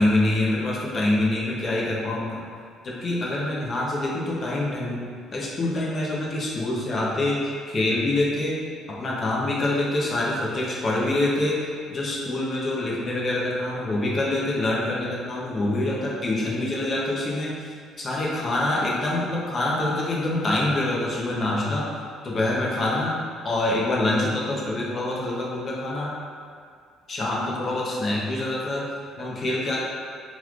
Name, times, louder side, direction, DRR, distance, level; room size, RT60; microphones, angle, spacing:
voice 1, 0.0-2.4 2.8-5.0 5.3-8.5 9.0-11.6 11.9-21.9 22.2-23.1 23.4-26.1 27.1-28.8 29.2-29.8, left 2 dB, 35° left, -4 dB, 0.6 m, -25 dB
3.9 x 3.0 x 2.4 m, 2.1 s
cardioid pair, 135°, 0 cm